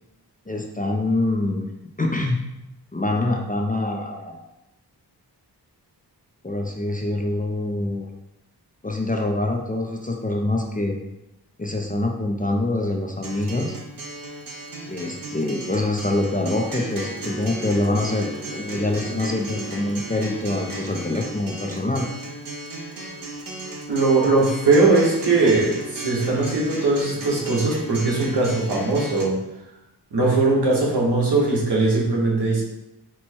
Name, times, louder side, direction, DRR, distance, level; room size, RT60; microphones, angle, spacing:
voice 1, 0.5-1.6 2.0-2.4 2.9-4.4 6.4-8.1 8.8-11.0 11.6-13.7 14.9-22.1, left 2 dB, 20° left, 1 dB, 0.4 m, -25 dB
Acoustic guitar, 13.2-29.2, right 1 dB, 55° right, 0.7 m, -35 dB
voice 2, 23.9-29.4 30.1-32.6, right 3 dB, 75° right, -4 dB, 1.3 m, -20 dB
4.4 x 2.1 x 4.4 m, 0.91 s
wide cardioid pair, 100°, 41 cm